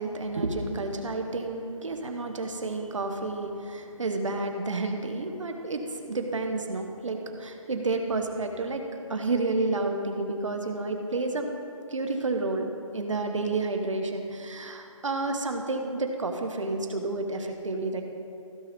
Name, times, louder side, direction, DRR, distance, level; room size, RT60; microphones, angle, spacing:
voice 1, 0.0-8.8 9.1-11.5 11.9-18.0, right 3 dB, 65° right, 4 dB, 1.3 m, -30 dB
15.5 x 5.6 x 3.6 m, 2.6 s
figure-of-eight pair, 170°, 18 cm